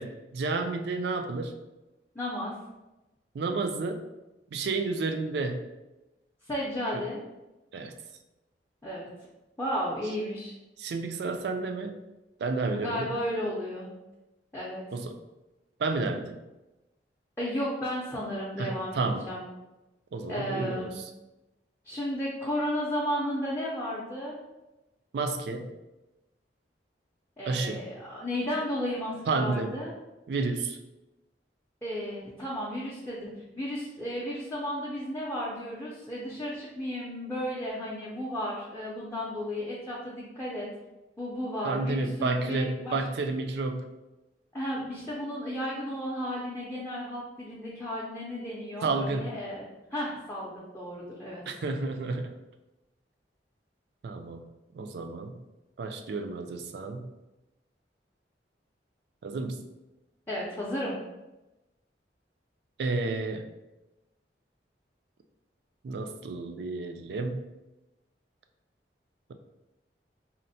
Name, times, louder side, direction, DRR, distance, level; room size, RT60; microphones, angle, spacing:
voice 1, 0.0-1.6 3.3-4.1 4.5-5.7 7.7-7.9 10.8-12.0 12.4-13.1 14.9-15.1 15.8-16.4 18.6-19.3 20.1-20.9 25.1-25.7 27.5-27.8 29.3-29.8 30.3-30.8 41.6-44.0 48.8-49.4 51.5-52.3 54.0-54.4 54.7-55.4 55.8-57.1 59.2-59.7 62.8-63.5 65.8-67.5, right 3 dB, 65° right, 7 dB, 0.3 m, -31 dB
voice 2, 2.1-2.5 6.4-7.2 8.8-9.1 9.6-10.5 12.7-13.9 14.5-14.8 17.4-19.4 20.3-21.0 21.8-24.4 27.4-29.9 31.8-40.7 41.2-43.0 44.5-49.6 49.9-51.4 60.3-60.9, equal, 15° left, -7 dB, 0.5 m, -33 dB
4.1 x 2.0 x 2.6 m, 1.0 s
head